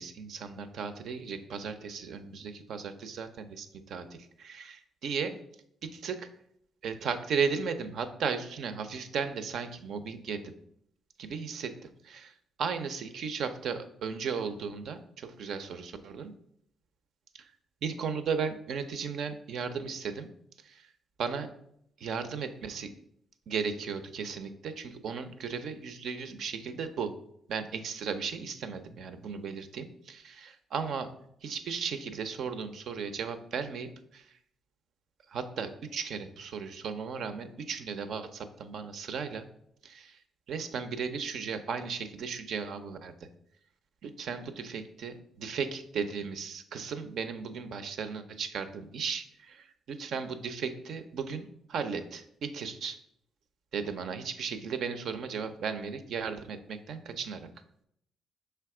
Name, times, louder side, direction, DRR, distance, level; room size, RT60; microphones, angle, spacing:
voice 1, 0.0-5.3 5.8-6.3 6.8-10.5 11.2-16.3 17.3-17.5 17.8-20.3 20.6-20.9 21.2-21.5 22.0-22.9 23.5-27.1 27.5-31.1 31.4-34.3 35.3-39.5 39.8-40.2 40.5-43.1 44.0-53.0 53.7-57.5, right 6 dB, 70° right, 9 dB, 0.6 m, -36 dB
5.8 x 3.4 x 4.8 m, 0.72 s
cardioid pair, 90°, 0 cm